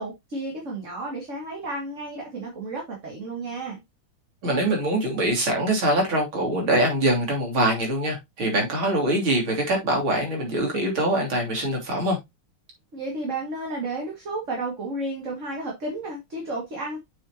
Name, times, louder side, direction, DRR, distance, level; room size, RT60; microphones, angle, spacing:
voice 1, 0.0-3.8 12.9-17.0, right 2 dB, 35° right, 2.3 m, -32 dB
voice 2, 4.4-12.2, right 1 dB, 65° right, 3.9 m, -23 dB
8.0 x 6.5 x 2.9 m
omnidirectional pair, 2.4 m